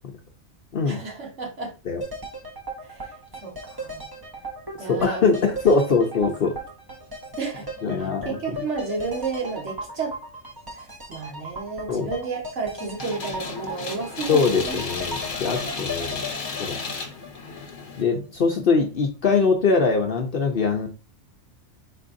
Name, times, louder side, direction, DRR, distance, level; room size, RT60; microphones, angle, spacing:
voice 1, 0.9-1.7 2.8-3.1 3.4-4.0 4.8-5.4 7.4-7.7 8.0-10.2 10.7-14.8, right 4 dB, 65° right, 0 dB, 1.6 m, -32 dB
sound 1, 2.0-17.9 18.2-18.3, equal, 25° right, 0.5 m, -37 dB
voice 2, 4.8-6.6 7.8-8.6 11.9-12.1 14.3-16.2 16.6-16.8 18.0-20.9, left 4 dB, 55° left, 1 dB, 0.7 m, -22 dB
sound 2, 13.0-18.0, left 4 dB, 75° left, 1.2 m, -33 dB
4.5 x 4.2 x 2.5 m, 0.31 s
omnidirectional pair, 1.3 m